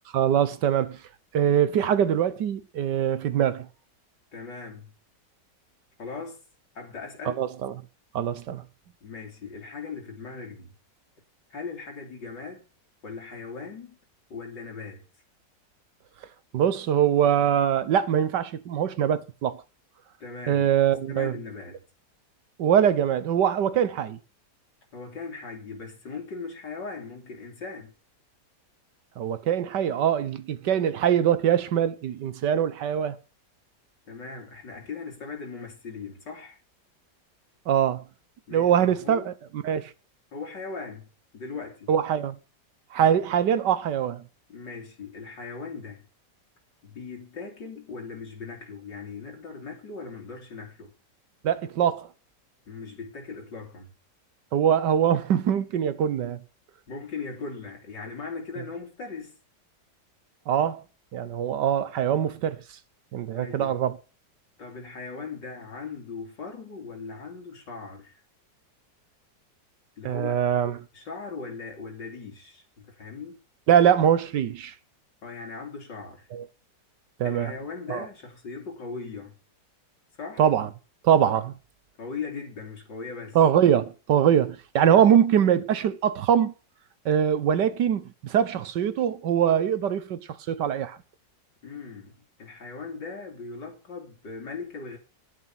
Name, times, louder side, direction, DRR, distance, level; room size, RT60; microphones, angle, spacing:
voice 1, 0.1-1.0 1.3-3.7 7.3-7.7 8.1-8.6 16.5-19.6 20.5-21.3 22.6-24.2 29.2-33.2 37.7-38.0 38.5-39.9 41.9-42.4 42.9-44.2 51.4-52.1 54.5-56.4 60.5-60.8 61.1-62.6 63.1-64.0 70.0-70.8 73.7-74.7 76.3-76.4 77.2-77.5 77.9-78.0 80.4-80.7 81.0-81.5 83.3-86.5 87.0-90.2 90.5-91.0, right 9 dB, 75° right, 1.6 m, -23 dB
voice 2, 4.3-4.9 6.0-6.4 6.8-7.4 9.0-10.7 11.5-12.7 13.0-14.0 14.3-15.1 20.2-20.7 21.1-21.8 24.9-27.9 34.1-36.6 38.5-39.3 40.3-41.9 44.5-46.0 46.8-50.9 52.7-53.9 56.9-59.4 63.4-63.8 64.6-68.2 70.0-70.4 70.9-73.4 75.2-76.3 77.2-79.4 80.2-80.4 82.0-83.4 91.6-95.0, left 4 dB, 75° left, 3.5 m, -39 dB
11.5 x 10.0 x 5.9 m
omnidirectional pair, 1.9 m